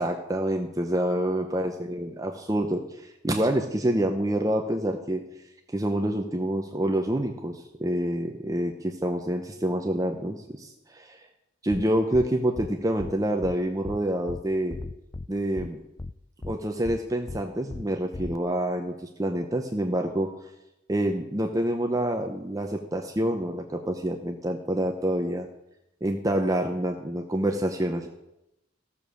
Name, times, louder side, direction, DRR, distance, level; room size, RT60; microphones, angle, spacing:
voice 1, 0.0-5.2 5.7-11.3 11.6-14.8 15.3-15.8 16.4-20.3 20.9-25.5 26.0-28.1, right 1 dB, 20° right, 3 dB, 0.7 m, -27 dB
sound 1, 11.7-11.8 12.1-12.3 12.6-12.7 13.0-13.1 13.4-13.5 13.8-14.0 14.3-14.4 14.7-15.3 15.6-15.7 16.0-16.1 16.4-16.5 16.8-17.0 17.3-17.4 17.7-17.8 18.1-18.4, left 2 dB, 20° left, 0.3 m, -36 dB
15.0 x 7.0 x 6.4 m, 0.89 s
head